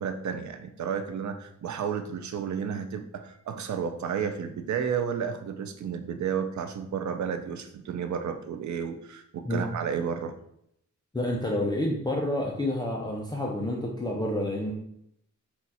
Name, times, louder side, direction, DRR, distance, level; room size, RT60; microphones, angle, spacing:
voice 1, 0.0-10.3, right 7 dB, 65° right, 8 dB, 0.6 m, -32 dB
voice 2, 11.1-14.7, left 1 dB, 15° left, -2 dB, 0.5 m, -29 dB
4.3 x 2.4 x 4.2 m, 0.74 s
wide cardioid pair, 140°, 31 cm